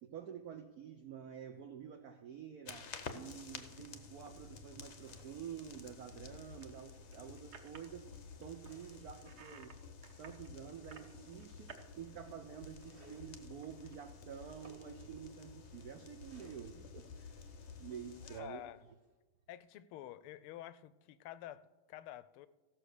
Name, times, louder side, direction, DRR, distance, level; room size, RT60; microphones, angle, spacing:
voice 1, 0.0-8.1 8.4-9.8 10.2-17.4 17.8-18.6, right 8 dB, 75° right, 7 dB, 0.8 m, -49 dB
sound 1, 2.7-18.4, left 5 dB, 55° left, 0.7 m, -52 dB
sound 2, 2.8-2.9 3.4-3.6 4.1-4.5 6.3-8.0 8.4-9.8 10.0-11.9 12.2-14.0, right 6 dB, 55° right, 1.4 m, -58 dB
sound 3, 3.0-3.8 4.7-5.5 6.7-7.8 8.5-9.1 9.8-9.9 10.4-11.6 12.7-13.3 14.3-14.9 16.2-17.0 17.9-19.2, right 1 dB, 30° right, 1.7 m, -64 dB
voice 2, 18.2-18.8 19.5-22.5, left 12 dB, 85° left, 16 dB, 1.5 m, -49 dB
15.5 x 6.1 x 6.5 m, 1.3 s
omnidirectional pair, 2.4 m